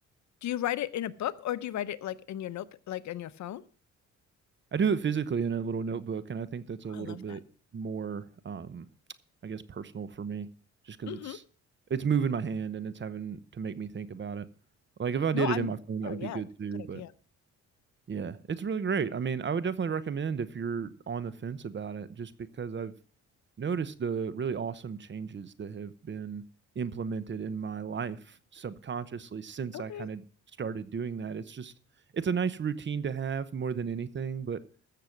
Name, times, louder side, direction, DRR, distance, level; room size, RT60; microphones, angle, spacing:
voice 1, 0.4-3.6 6.9-7.4 11.1-11.4 15.3-15.7 16.0-16.4 16.7-17.1 29.7-30.1, left 12 dB, 65° left, 0.8 m, -35 dB
voice 2, 4.7-7.4 7.7-8.9 9.4-10.5 10.8-11.4 11.9-14.4 15.0-17.0 18.1-22.9 23.6-26.4 26.7-30.2 30.6-31.7 32.1-34.6, right 6 dB, 40° right, 1.0 m, -33 dB
14.5 x 6.9 x 5.9 m
cardioid pair, 90°, 30 cm